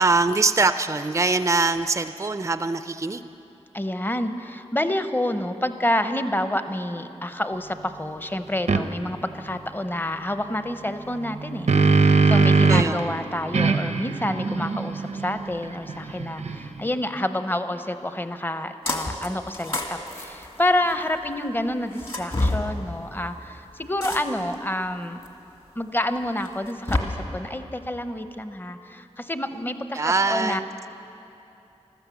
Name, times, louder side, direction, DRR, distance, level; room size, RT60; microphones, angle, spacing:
voice 1, 0.0-3.3 12.7-13.1 29.9-30.7, right 3 dB, 25° right, 11 dB, 0.4 m, -23 dB
voice 2, 3.7-25.2 25.8-30.6, left 1 dB, 15° left, 9 dB, 0.7 m, -28 dB
sound 1, 8.7-8.8 11.2-13.0 13.5-16.9, right 4 dB, 80° right, 0.7 m, -21 dB
sound 2, 18.9-19.3 19.5-21.1 21.9-22.6 24.0-24.5 25.2-25.3 26.4-27.0, left 2 dB, 45° left, 1.9 m, -27 dB
15.5 x 12.5 x 7.0 m, 2.9 s
wide cardioid pair, 65°, 12 cm